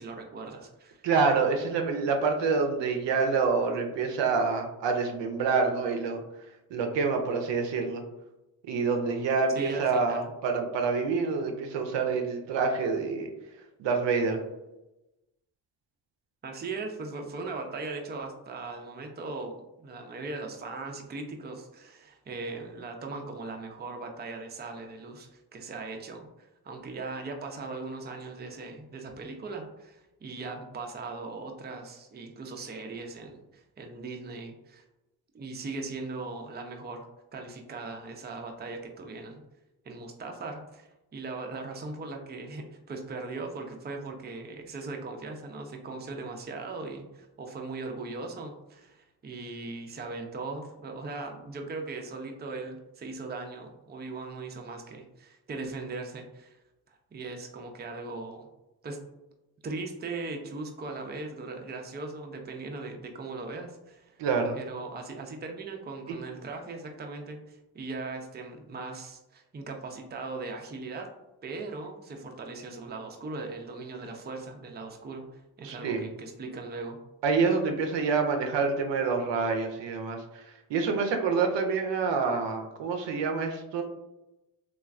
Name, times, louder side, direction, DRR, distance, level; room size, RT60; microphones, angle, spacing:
voice 1, 0.0-1.0 9.5-10.3 16.4-34.8 35.3-37.0 37.3-39.4 39.8-56.5 56.9-58.5 58.8-59.0 59.6-64.2 64.5-71.1 71.4-77.0, right 3 dB, 25° right, 3 dB, 0.5 m, -39 dB
voice 2, 1.0-6.2 6.7-8.0 8.7-13.3 13.8-14.4 64.2-64.6 75.6-76.1 77.2-80.4 80.7-83.8, right 4 dB, 70° right, 5 dB, 0.6 m, -27 dB
3.0 x 2.4 x 2.3 m, 0.97 s
supercardioid pair, 50°, 44 cm